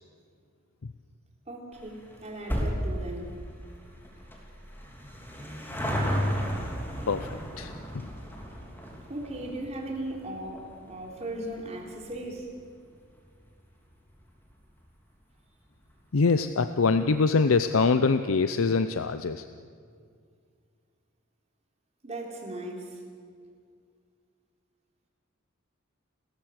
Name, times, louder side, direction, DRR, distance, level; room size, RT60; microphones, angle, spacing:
voice 1, 1.5-3.3 9.1-12.5 22.0-23.0, right 1 dB, 35° right, 0 dB, 3.6 m, -37 dB
sound 1, 1.7-14.5 14.8-14.9 15.7-15.8 16.0-16.1 16.4-16.5, equal, 10° left, 3.1 m, -35 dB
voice 2, 7.1-8.1 16.1-19.5, left 4 dB, 75° left, 10 dB, 0.6 m, -24 dB
30.0 x 14.0 x 6.6 m, 2.2 s
head